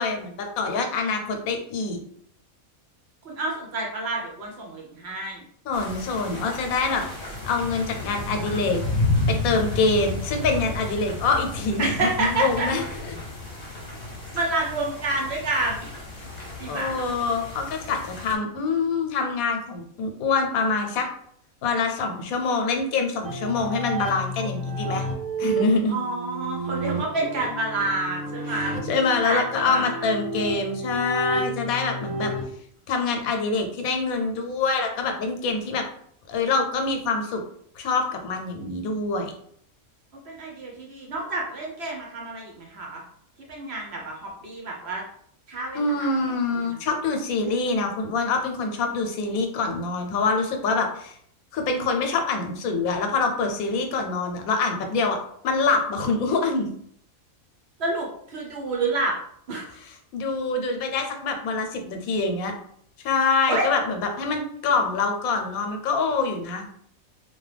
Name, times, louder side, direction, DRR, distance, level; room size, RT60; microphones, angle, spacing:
voice 1, 0.0-2.0 5.7-7.0 7.4-8.8 9.3-12.8 16.2-16.3 16.7-21.1 21.6-25.1 25.4-26.0 28.9-32.3 32.9-35.8 36.3-37.4 37.8-39.3 45.7-51.2 51.5-55.2 55.4-56.7 60.1-62.5 63.0-66.7, left 4 dB, 85° left, 4 dB, 1.0 m, -25 dB
voice 2, 3.2-5.4 11.8-12.7 14.3-15.9 16.6-17.0 25.9-28.8 29.2-30.1 40.3-43.0 43.5-45.0 45.5-46.3 46.5-46.8 57.8-59.2 59.5-59.7 63.5-63.7, right 2 dB, 60° right, -1 dB, 0.8 m, -29 dB
sound 1, 5.7-18.3, left 2 dB, 35° left, 0.8 m, -32 dB
sound 2, 23.2-32.4, right 2 dB, 80° right, 1.0 m, -31 dB
2.9 x 2.2 x 3.2 m, 0.66 s
omnidirectional pair, 1.5 m